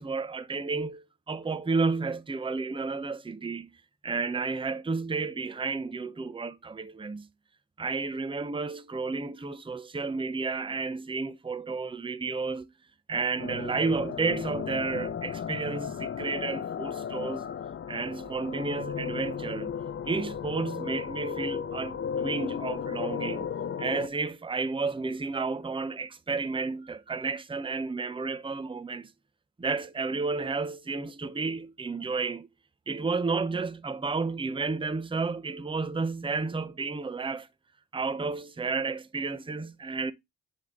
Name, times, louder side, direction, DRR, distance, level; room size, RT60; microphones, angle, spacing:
voice 1, 0.0-3.7 4.0-7.3 7.8-12.7 13.1-17.5 17.9-19.8 20.1-23.5 23.8-29.1 29.6-32.5 32.9-37.5 37.9-40.1, right 4 dB, 10° right, 0.6 m, -31 dB
sound 1, 13.4-24.1, left 7 dB, 30° left, 0.4 m, -35 dB
7.6 x 3.6 x 3.6 m
cardioid pair, 55°, 43 cm